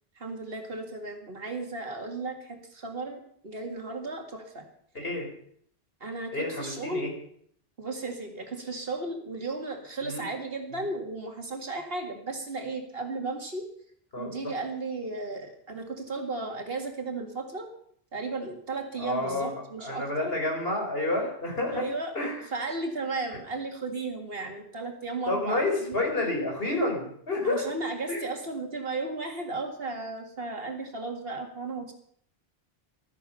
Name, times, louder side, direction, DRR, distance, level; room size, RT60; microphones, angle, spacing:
voice 1, 0.2-4.6 6.0-7.0 7.8-13.6 14.2-17.7 18.1-20.4 21.7-22.1 22.5-26.0 27.4-31.9, right 3 dB, 65° right, 4 dB, 2.4 m, -35 dB
voice 2, 4.9-5.3 6.3-7.1 10.0-10.2 10.8-10.9 14.1-14.3 19.0-21.8 22.1-22.4 25.3-27.7 28.1-28.2, left 2 dB, 65° left, 1 dB, 4.5 m, -29 dB
14.5 x 13.0 x 5.7 m, 0.65 s
omnidirectional pair, 1.1 m